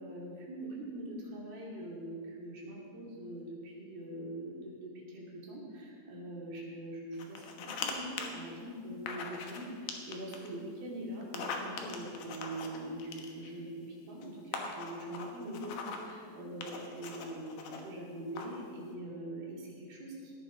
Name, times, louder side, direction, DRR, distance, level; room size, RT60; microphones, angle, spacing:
voice 1, 0.0-13.7 14.1-20.4, right 1 dB, 55° right, -4 dB, 4.3 m, -43 dB
sound 1, 7.2-7.9 8.2-8.3 9.1-9.6 9.9-10.5 11.2-13.6 14.2-14.3 14.5-16.1 16.6-17.8 18.3-18.6, left 5 dB, 70° left, 2.0 m, -41 dB
16.5 x 10.5 x 5.3 m, 2.3 s
omnidirectional pair, 5.4 m